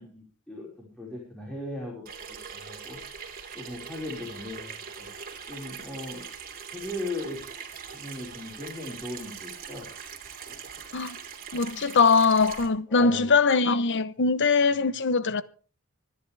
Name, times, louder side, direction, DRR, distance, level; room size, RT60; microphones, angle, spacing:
voice 1, 0.0-2.0 2.3-3.0 3.5-5.1 5.5-6.2 6.7-7.4 7.9-9.9 10.5-10.6 12.9-13.3 14.7-14.8, left 2 dB, 5° left, 5.1 m, -38 dB
Water tap faucet / Sink (filling or washing), 2.1-12.7, right 6 dB, 45° right, 2.8 m, -42 dB
voice 2, 11.5-15.4, left 4 dB, 55° left, 0.9 m, -22 dB
26.0 x 10.5 x 3.4 m
head